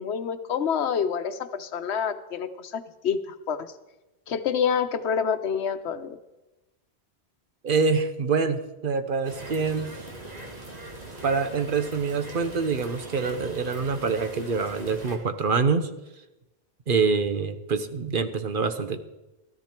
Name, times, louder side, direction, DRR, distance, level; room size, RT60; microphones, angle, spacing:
voice 1, 0.0-3.7 4.3-6.2, left 7 dB, 85° left, 11 dB, 1.1 m, -27 dB
voice 2, 7.6-9.9 11.2-15.9 16.9-19.0, right 5 dB, 55° right, 9 dB, 1.0 m, -25 dB
sound 1, 9.2-15.2, right 1 dB, 40° right, 1.9 m, -41 dB
13.5 x 13.5 x 4.4 m, 1.0 s
omnidirectional pair, 1.1 m